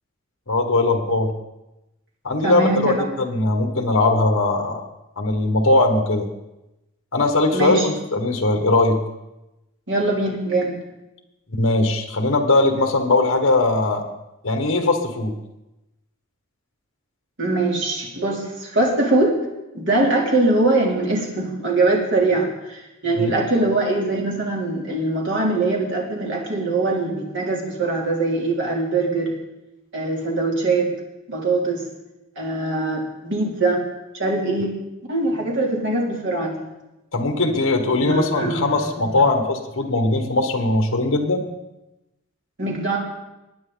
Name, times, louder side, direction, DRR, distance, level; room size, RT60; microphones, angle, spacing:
voice 1, 0.5-1.3 2.2-4.8 5.2-6.3 7.1-9.0 11.5-14.0 14.4-15.3 23.2-23.3 37.1-41.4, left 2 dB, 60° left, 4 dB, 1.5 m, -20 dB
voice 2, 2.4-3.1 7.5-7.8 9.9-10.7 17.4-19.3 19.7-29.3 29.9-30.9 31.3-31.8 32.4-33.8 34.2-34.7 35.1-36.7 38.1-38.7 42.6-43.0, right 2 dB, 55° right, -2 dB, 3.2 m, -22 dB
20.0 x 9.4 x 4.0 m, 0.96 s
head